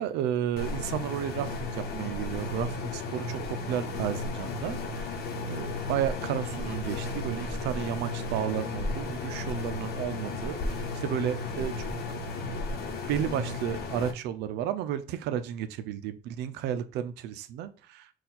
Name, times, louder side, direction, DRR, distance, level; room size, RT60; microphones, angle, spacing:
voice 1, 0.0-5.2 5.5-11.9 13.1-18.1, right 10 dB, 85° right, 11 dB, 0.4 m, -32 dB
sound 1, 0.6-14.1, left 2 dB, 70° left, 0.9 m, -34 dB
4.2 x 2.4 x 4.0 m, 0.40 s
cardioid pair, 110°, 17 cm